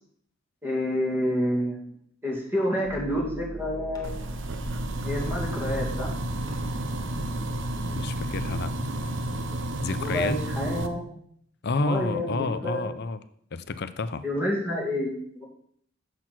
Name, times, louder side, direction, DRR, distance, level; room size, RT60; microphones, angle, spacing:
voice 1, 0.6-1.9 2.2-4.1 5.0-6.1 10.0-11.1 11.8-12.9 14.2-15.4, equal, 10° right, -3 dB, 2.1 m, -29 dB
sound 1, 2.8-8.6, equal, 20° left, 1.5 m, -38 dB
sound 2, 4.0-10.9, right 1 dB, 65° right, 0.7 m, -31 dB
voice 2, 7.9-9.2 9.8-10.4 11.6-13.2 13.5-14.2, left 3 dB, 55° left, 12 dB, 0.6 m, -30 dB
7.5 x 6.3 x 5.9 m, 0.66 s
head